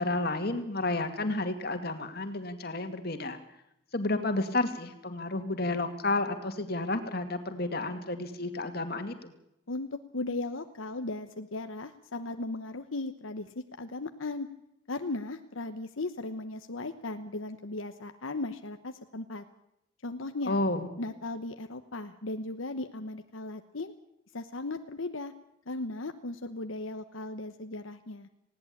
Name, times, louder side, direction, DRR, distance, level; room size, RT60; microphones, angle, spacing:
voice 1, 0.0-3.4 3.9-9.3 20.5-20.9, left 2 dB, 50° left, 7 dB, 2.3 m, -31 dB
voice 2, 9.7-14.5 14.9-19.4 20.0-20.6 21.0-23.9 24.3-25.3 25.7-28.3, left 2 dB, 80° left, 8 dB, 1.1 m, -37 dB
19.5 x 17.5 x 8.6 m, 0.79 s
head